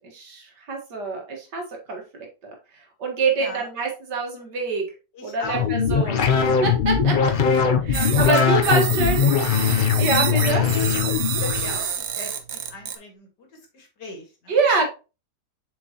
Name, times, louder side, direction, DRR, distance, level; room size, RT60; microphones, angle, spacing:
voice 1, 0.1-2.5 3.0-4.9 5.2-6.2 6.6-7.3 7.6-9.3 10.0-10.7 14.5-14.9, right 3 dB, 80° right, 2 dB, 2.3 m, -25 dB
voice 2, 3.4-3.7 5.1-5.7 7.9-8.1 8.4-8.7 9.1-9.3 11.4-14.6, left 3 dB, 85° left, 2 dB, 2.5 m, -37 dB
sound 1, 5.4-11.8, left 6 dB, 60° left, 0.5 m, -20 dB
sound 2, 7.9-12.9, right 8 dB, 65° right, 1.2 m, -28 dB
7.0 x 4.7 x 2.9 m, 0.30 s
omnidirectional pair, 1.8 m